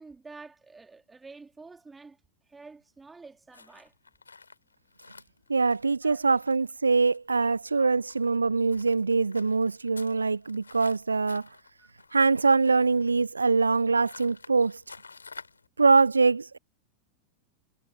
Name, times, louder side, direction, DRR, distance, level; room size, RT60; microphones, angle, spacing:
voice 1, 0.0-2.2 2.5-3.9 6.0-6.2 6.9-7.0 7.5-7.9 11.8-11.9, right 4 dB, 10° right, 3.4 m, -49 dB
sound 1, 3.5-15.7, left 4 dB, 75° left, 3.5 m, -51 dB
voice 2, 5.5-11.5 12.1-14.8 15.8-16.6, right 4 dB, 80° right, 0.5 m, -23 dB
figure-of-eight pair, 90°, 0 cm